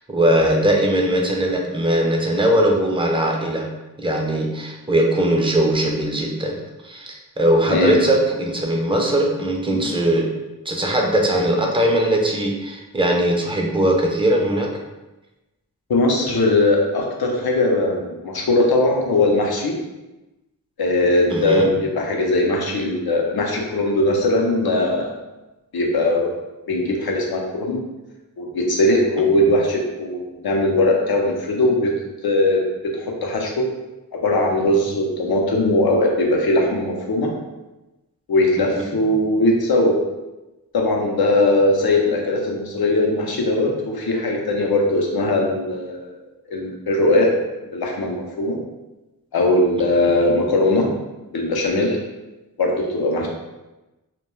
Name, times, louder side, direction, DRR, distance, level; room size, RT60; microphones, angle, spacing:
voice 1, 0.1-3.7 4.0-6.6 6.8-10.3 10.7-14.7 21.3-21.7 38.6-38.7 38.9-39.0 53.2-53.3, right 1 dB, 15° right, 0 dB, 0.4 m, -20 dB
voice 2, 7.6-8.0 9.7-9.9 15.9-19.8 20.8-25.1 25.7-26.3 26.7-27.8 28.4-31.9 32.2-32.6 33.0-33.7 34.1-37.3 38.3-39.9 40.7-46.1 46.5-47.3 47.7-48.6 49.3-50.9 51.3-52.0 52.6-53.3, left 2 dB, 80° left, 0 dB, 0.6 m, -20 dB
2.2 x 2.2 x 3.0 m, 1.0 s
wide cardioid pair, 45°, 36 cm